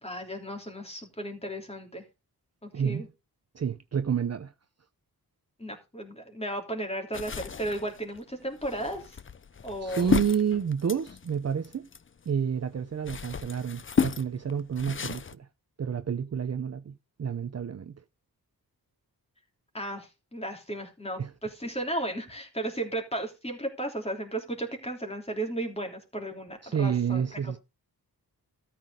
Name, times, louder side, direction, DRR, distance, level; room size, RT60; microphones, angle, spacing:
voice 1, 0.0-2.0 2.6-3.1 5.6-9.2 9.6-10.1 19.7-27.6, right 1 dB, 15° left, 3.2 m, -35 dB
voice 2, 2.7-3.1 3.5-4.5 9.8-11.9 12.3-15.5 15.8-16.9 17.2-18.0 21.2-21.3 26.6-27.6, right 7 dB, 40° right, 0.7 m, -29 dB
sound 1, 7.1-12.3 12.8-15.3, left 6 dB, 35° left, 0.6 m, -33 dB
13.5 x 6.0 x 4.8 m
wide cardioid pair, 105°, 38 cm